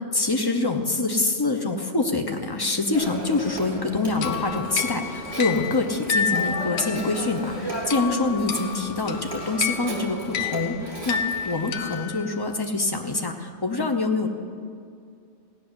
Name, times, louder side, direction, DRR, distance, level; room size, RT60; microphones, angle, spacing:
voice 1, 0.0-11.2 11.4-14.3, left 3 dB, 20° left, 5 dB, 0.9 m, -25 dB
Telephone, 2.9-12.0, right 2 dB, 30° right, 3.0 m, -36 dB
sound 1, 4.2-12.6, left 7 dB, 80° left, 1.0 m, -31 dB
16.5 x 6.4 x 9.6 m, 2.4 s
omnidirectional pair, 1.2 m